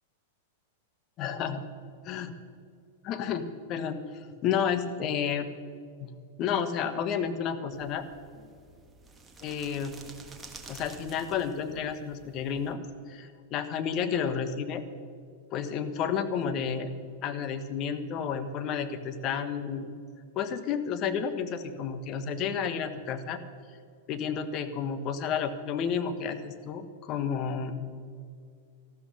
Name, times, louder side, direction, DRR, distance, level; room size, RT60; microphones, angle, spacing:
voice 1, 1.2-1.6 2.0-2.3 3.0-5.5 6.0-6.1 6.4-8.1 8.4-8.5 9.4-9.9 10.7-12.8 13.1-14.8 15.5-16.9 17.2-19.9 20.3-23.4 24.1-27.9, left 7 dB, 40° left, 10 dB, 1.3 m, -31 dB
sound 1, 7.7-12.7, right 3 dB, 15° right, 1.6 m, -50 dB
13.5 x 12.5 x 5.6 m, 2.2 s
hypercardioid pair, 110°, 0 cm